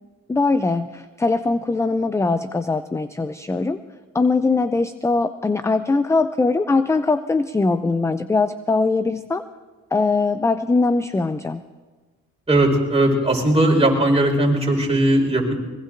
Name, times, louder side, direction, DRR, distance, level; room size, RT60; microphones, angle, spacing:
voice 1, 0.3-3.8 4.1-9.4 9.9-11.6, left 3 dB, 10° left, 12 dB, 0.4 m, -21 dB
voice 2, 12.5-15.5, right 1 dB, 20° right, -1 dB, 4.7 m, -18 dB
24.5 x 21.5 x 2.6 m, 1.3 s
cardioid pair, 90°, 30 cm